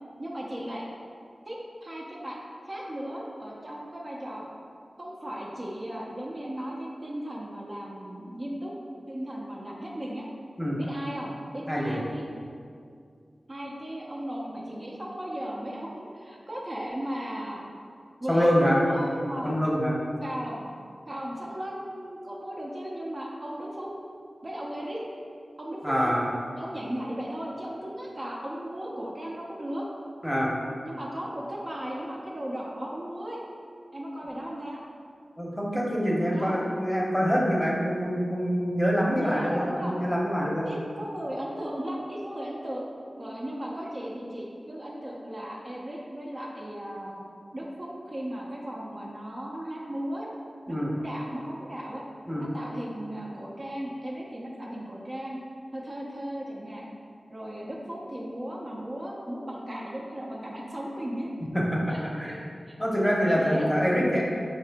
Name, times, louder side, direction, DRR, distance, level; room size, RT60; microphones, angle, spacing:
voice 1, 0.2-0.9 1.5-4.5 5.0-8.7 9.1-10.3 10.8-12.3 13.5-17.6 18.2-19.6 20.2-20.7 21.1-23.9 24.4-25.0 25.6-26.2 26.6-29.9 30.8-33.4 33.9-34.8 36.2-36.6 39.1-40.0 40.7-42.9 43.1-47.2 47.5-50.3 50.7-52.0 52.4-55.4 55.7-56.9 57.3-61.3 61.9-62.4 62.7-62.8 63.3-63.7, equal, 40° right, -4 dB, 0.5 m, -36 dB
voice 2, 18.3-18.8 19.4-20.0 25.8-26.3 30.2-30.5 35.4-40.7 50.7-50.9 52.3-52.4 61.5-61.6 62.2-62.3 62.8-64.2, equal, 5° left, -4 dB, 0.8 m, -25 dB
4.8 x 2.8 x 3.4 m, 2.3 s
wide cardioid pair, 65°, 0 cm